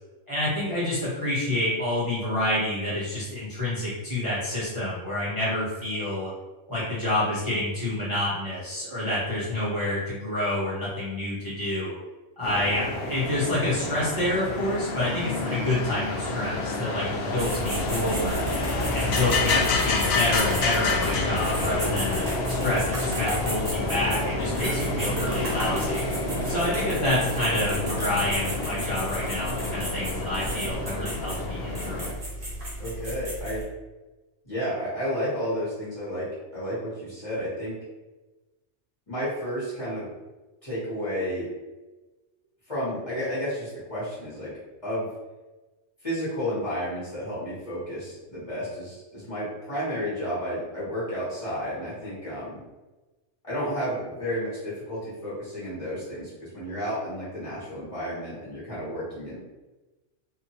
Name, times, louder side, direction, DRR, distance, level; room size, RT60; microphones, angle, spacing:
voice 1, 0.3-6.3 6.7-12.0 12.4-18.5 18.9-26.0 26.4-31.6 31.8-32.1, left 1 dB, 20° right, -11 dB, 1.0 m, -28 dB
sound 1, 12.4-32.1, left 3 dB, 65° left, 0.8 m, -29 dB
sound 2, 17.4-33.6, right 1 dB, 50° right, 1.1 m, -34 dB
voice 2, 32.8-33.6 34.4-37.7 39.1-40.1 40.6-41.5 42.7-44.5 44.8-45.1 46.0-52.6 53.4-59.4, equal, 30° left, -11 dB, 1.3 m, -31 dB
2.8 x 2.6 x 2.8 m, 1.1 s
omnidirectional pair, 1.3 m